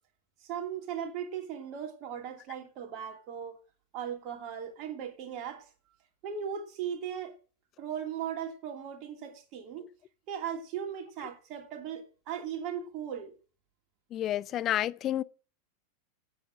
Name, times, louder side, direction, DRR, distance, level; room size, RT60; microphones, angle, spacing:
voice 1, 0.4-3.6 3.9-5.7 6.2-7.3 7.8-9.8 10.3-13.3, right 8 dB, 40° right, 2.8 m, -38 dB
voice 2, 14.1-15.2, left 12 dB, 30° left, 0.6 m, -30 dB
8.9 x 8.4 x 7.8 m
figure-of-eight pair, 90°, 0 cm